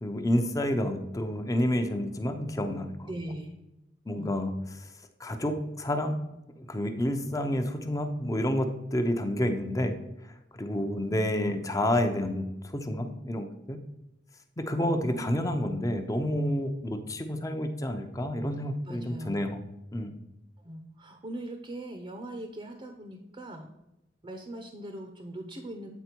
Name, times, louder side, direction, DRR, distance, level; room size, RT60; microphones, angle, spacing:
voice 1, 0.0-3.1 4.1-4.9 5.2-6.2 6.5-10.0 10.5-12.5 12.7-13.8 14.6-19.6 19.9-20.1, left 1 dB, 20° left, 6 dB, 0.7 m, -29 dB
voice 2, 3.0-3.6 4.2-4.4 10.9-11.2 14.9-15.3 18.8-19.4 20.6-23.7 24.2-25.9, right 1 dB, 30° right, 5 dB, 0.7 m, -40 dB
8.2 x 4.3 x 4.5 m, 0.91 s
head